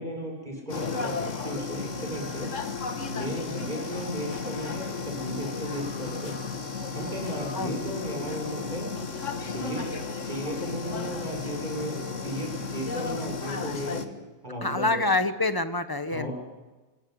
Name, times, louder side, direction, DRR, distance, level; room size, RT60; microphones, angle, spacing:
voice 1, 0.0-2.5 3.1-6.4 6.9-8.9 9.4-9.8 10.2-14.1 14.4-15.0 16.1-16.3, equal, 35° right, 0 dB, 7.4 m, -35 dB
sound 1, 0.7-14.1, left 4 dB, 85° left, 2.1 m, -34 dB
voice 2, 14.6-16.3, left 2 dB, 20° left, 10 dB, 1.4 m, -26 dB
27.0 x 17.5 x 9.7 m, 1.2 s
omnidirectional pair, 1.3 m